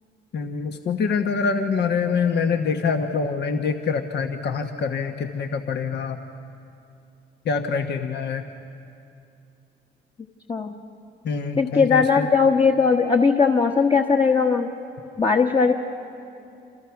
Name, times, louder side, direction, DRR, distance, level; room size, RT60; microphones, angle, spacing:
voice 1, 0.3-6.2 7.4-8.4 11.2-12.3, left 5 dB, 60° left, 5 dB, 1.3 m, -25 dB
voice 2, 11.6-14.7 15.2-15.7, left 5 dB, 25° left, 2 dB, 1.3 m, -19 dB
28.5 x 27.5 x 5.9 m, 2.6 s
cardioid pair, 90°, 20 cm